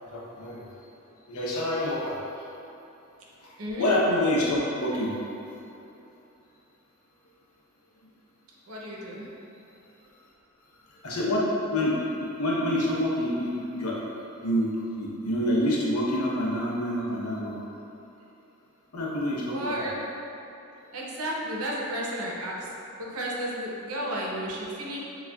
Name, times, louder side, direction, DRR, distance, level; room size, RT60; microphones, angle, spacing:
voice 1, 0.1-0.6 1.3-2.2 3.8-5.1 9.1-9.3 11.0-11.4 11.7-14.0 14.4-17.6 18.9-19.6, left 1 dB, 90° left, -4 dB, 0.8 m, -27 dB
voice 2, 3.6-3.9 8.7-9.2 19.5-20.0 20.9-22.7 23.0-25.0, right 1 dB, 85° right, -4 dB, 0.8 m, -32 dB
6.9 x 2.4 x 2.3 m, 2.9 s
head